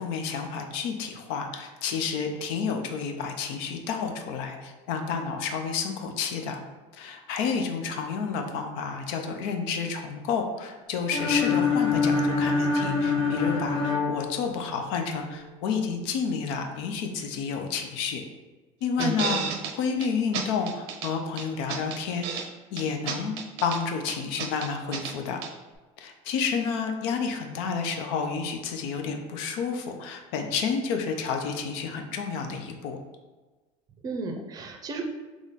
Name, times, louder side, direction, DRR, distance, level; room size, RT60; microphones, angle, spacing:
voice 1, 0.0-6.6 6.9-18.2 18.8-19.4 19.7-22.5 22.7-23.3 23.6-25.4 26.0-33.0, left 5 dB, 70° left, 4 dB, 0.6 m, -30 dB
sound 1, 11.1-15.0, left 4 dB, 50° left, 1.1 m, -25 dB
voice 2, 19.0-19.5 34.0-35.0, right 3 dB, 30° right, 2 dB, 0.6 m, -33 dB
sound 2, 19.0-19.7 20.0-20.1 20.3-21.1 21.4-22.5 22.8-23.8 24.1-25.1 25.4-25.5, right 6 dB, 90° right, 0.6 m, -32 dB
3.8 x 3.0 x 4.0 m, 1.2 s
cardioid pair, 155°, 14 cm